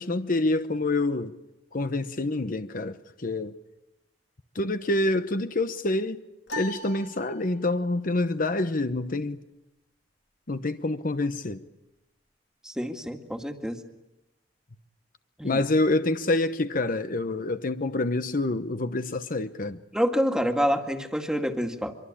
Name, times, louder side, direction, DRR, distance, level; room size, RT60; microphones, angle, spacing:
voice 1, 0.0-1.3 1.7-3.6 4.5-6.2 6.5-9.4 10.5-11.6 15.4-19.8, left 2 dB, 50° left, 1.0 m, -27 dB
sound 1, 6.5-8.0, left 1 dB, 90° left, 3.1 m, -39 dB
voice 2, 12.6-13.8 15.4-15.6 19.9-21.9, equal, 5° right, 2.1 m, -27 dB
25.0 x 24.0 x 8.7 m
head